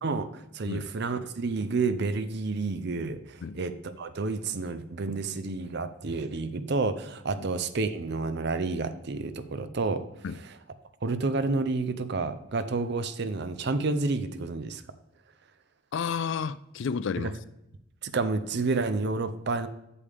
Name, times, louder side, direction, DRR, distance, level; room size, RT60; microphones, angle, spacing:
voice 1, 0.0-10.0 11.0-14.8 17.2-17.3 18.0-19.7, right 3 dB, 55° right, 12 dB, 0.6 m, -30 dB
voice 2, 15.9-17.4, left 6 dB, 60° left, 16 dB, 0.3 m, -31 dB
8.3 x 7.1 x 3.5 m, 0.83 s
head